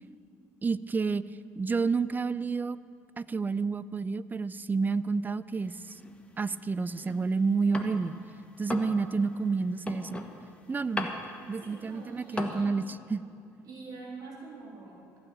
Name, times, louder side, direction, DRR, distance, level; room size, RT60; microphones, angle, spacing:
voice 1, 0.6-1.2 1.6-2.8 3.2-6.0 6.4-8.1 8.6-10.2 10.7-11.1 11.5-13.2, right 4 dB, 25° right, 17 dB, 0.4 m, -29 dB
sound 1, 5.5-8.2 8.5-12.6, left 2 dB, 15° left, 1.3 m, -38 dB
voice 2, 11.6-12.7 13.6-15.0, right 4 dB, 60° right, -2 dB, 3.0 m, -45 dB
15.0 x 6.3 x 8.8 m, 2.5 s
supercardioid pair, 70°, 7 cm